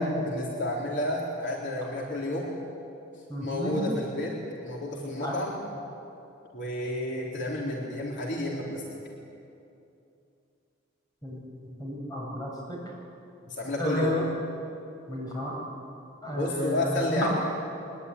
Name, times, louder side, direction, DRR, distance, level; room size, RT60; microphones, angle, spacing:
voice 1, 0.0-2.5 3.4-4.4 4.6-5.6 6.5-8.8 13.5-14.2 16.3-17.3, left 1 dB, 60° left, -3 dB, 3.8 m, -31 dB
voice 2, 3.3-3.8 5.2-5.4 11.2-12.8 13.8-14.2 15.1-15.6 16.2-17.3, left 1 dB, 20° left, -2 dB, 7.5 m, -31 dB
23.0 x 22.0 x 9.9 m, 2.7 s
head